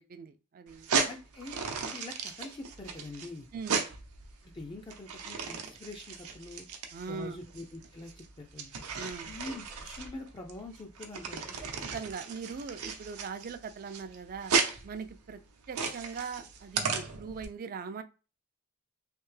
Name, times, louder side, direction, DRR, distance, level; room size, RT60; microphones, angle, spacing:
voice 1, 0.0-0.9 3.5-3.9 6.9-7.4 8.9-9.3 11.6-14.5 14.8-15.4 15.7-18.0, right 5 dB, 40° right, 9 dB, 0.4 m, -41 dB
sound 1, 0.7-17.4, right 5 dB, 80° right, 0.7 m, -35 dB
voice 2, 1.0-1.6 1.8-3.5 4.4-6.7 7.1-8.7 9.3-11.6, left 2 dB, 20° left, 1 dB, 0.4 m, -44 dB
3.3 x 2.8 x 3.2 m, 0.33 s
head